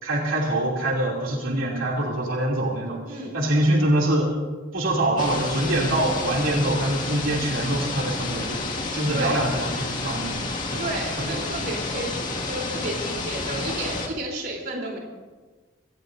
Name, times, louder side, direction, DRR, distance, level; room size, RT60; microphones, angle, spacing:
voice 1, 0.0-4.3 4.7-8.6 8.9-10.9 11.2-11.5, right 1 dB, 80° right, -2 dB, 2.9 m, -24 dB
sound 1, 5.2-14.1, left 3 dB, 40° left, 2.1 m, -30 dB
voice 2, 10.8-15.0, right 1 dB, 50° right, -1 dB, 3.7 m, -32 dB
25.0 x 17.5 x 2.7 m, 1.3 s
head